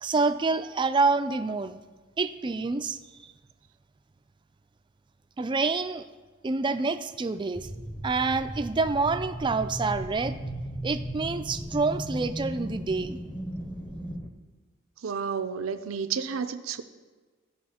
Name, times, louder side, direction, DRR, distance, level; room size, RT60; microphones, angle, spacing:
voice 1, 0.0-1.8 2.2-3.3 5.4-6.0 6.4-7.7 8.0-10.4 10.8-13.2, right 3 dB, 25° right, 10 dB, 0.3 m, -27 dB
sound 1, 7.5-14.3, right 1 dB, 10° left, 0.7 m, -36 dB
voice 2, 15.0-16.8, right 6 dB, 85° right, 10 dB, 0.6 m, -31 dB
14.0 x 5.5 x 4.2 m, 1.3 s
head